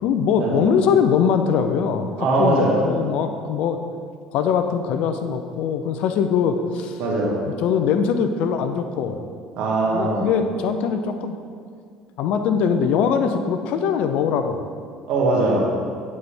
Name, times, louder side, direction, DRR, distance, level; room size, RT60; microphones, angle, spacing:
voice 1, 0.0-2.1 2.4-3.8 4.3-7.0 7.6-9.2 9.9-11.3 12.2-14.6, left 7 dB, 65° left, 7 dB, 0.5 m, -22 dB
voice 2, 2.2-2.8 7.0-7.4 9.6-10.3 15.1-15.7, right 2 dB, 60° right, -3 dB, 1.5 m, -21 dB
8.6 x 4.1 x 3.4 m, 2.1 s
hypercardioid pair, 60°, 2 cm